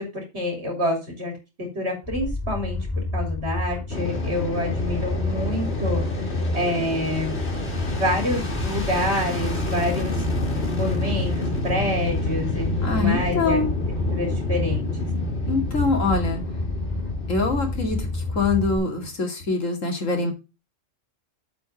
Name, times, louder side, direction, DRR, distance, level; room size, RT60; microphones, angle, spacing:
voice 1, 0.0-1.3 1.7-2.9 3.1-6.3 6.5-7.4 7.8-10.2 10.7-13.6 14.1-15.1, left 1 dB, 55° right, 1 dB, 3.6 m, -27 dB
sound 1, 2.0-18.8, left 2 dB, 35° left, 2.1 m, -29 dB
Fixed-wing aircraft airplane, 3.9-19.1, left 1 dB, 55° left, 2.8 m, -29 dB
voice 2, 12.8-13.7 15.5-16.4 17.3-20.3, left 3 dB, 80° left, 3 dB, 2.7 m, -24 dB
7.8 x 5.3 x 5.9 m, 0.28 s
omnidirectional pair, 1.3 m